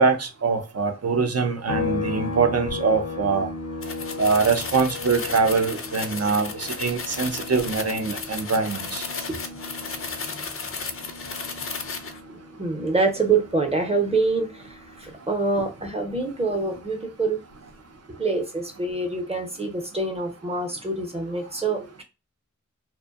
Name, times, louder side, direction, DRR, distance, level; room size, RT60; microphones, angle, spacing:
voice 1, 0.0-3.5 4.2-9.0, right 4 dB, 60° right, 0.6 m, -23 dB
sound 1, 1.7-15.2 15.6-17.8, left 3 dB, 90° left, 0.7 m, -37 dB
sound 2, 3.8-12.2, left 4 dB, 50° left, 0.4 m, -34 dB
voice 2, 12.6-14.6 15.0-17.4 18.1-22.0, right 3 dB, 20° right, 0.7 m, -25 dB
2.5 x 2.2 x 2.4 m
wide cardioid pair, 70°, 29 cm